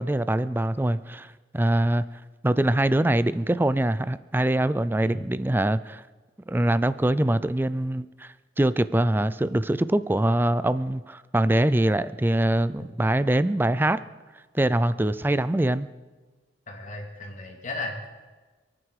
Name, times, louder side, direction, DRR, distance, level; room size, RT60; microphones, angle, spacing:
voice 1, 0.0-2.0 2.4-6.0 6.5-14.0 14.5-15.9, right 1 dB, 10° right, 15 dB, 0.4 m, -23 dB
voice 2, 16.7-18.1, left 2 dB, 40° left, 1 dB, 2.8 m, -35 dB
28.0 x 9.8 x 4.9 m, 1.3 s
head